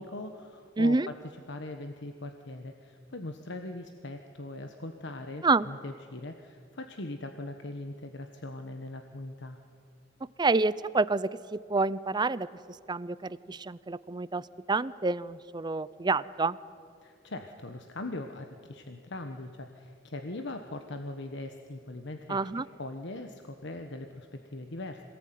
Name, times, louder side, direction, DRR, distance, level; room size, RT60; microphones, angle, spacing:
voice 1, 0.0-9.6 17.0-25.0, left 2 dB, 65° left, 6 dB, 1.3 m, -41 dB
voice 2, 0.8-1.1 5.4-5.7 10.4-12.5 12.9-14.4 14.7-16.6 22.3-22.7, right 3 dB, 20° right, 17 dB, 0.5 m, -28 dB
26.0 x 18.5 x 9.4 m, 2.3 s
head